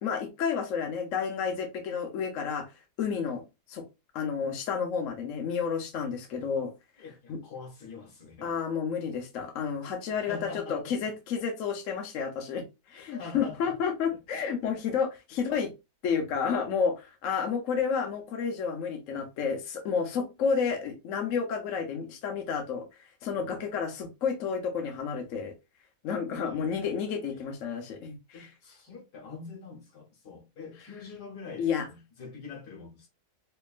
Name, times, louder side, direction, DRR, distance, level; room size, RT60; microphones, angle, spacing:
voice 1, 0.0-2.7 3.0-3.4 3.7-3.8 4.1-6.7 7.3-7.4 8.4-12.6 12.9-15.7 16.0-22.8 23.2-25.5 26.0-28.5 31.6-31.8, left 6 dB, 60° left, 1.1 m, -30 dB
voice 2, 7.0-8.5 10.1-11.1 12.9-13.8 14.1-14.4 26.3-27.0 27.3-27.4 28.3-33.1, left 4 dB, 75° left, 1.7 m, -45 dB
4.4 x 2.8 x 2.4 m
omnidirectional pair, 1.7 m